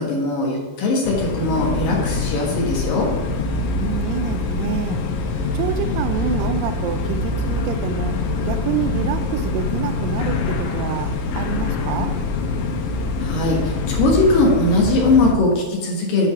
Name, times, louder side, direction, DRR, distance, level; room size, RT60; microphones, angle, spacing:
voice 1, 0.0-3.1 13.2-16.3, left 2 dB, 60° left, -1 dB, 2.5 m, -20 dB
sound 1, 1.0-15.3, left 3 dB, 80° left, 3.3 m, -24 dB
voice 2, 3.8-5.0 5.5-8.2 8.5-12.1, right 10 dB, 85° right, 9 dB, 2.9 m, -27 dB
10.0 x 5.4 x 4.7 m, 1.3 s
omnidirectional pair, 5.5 m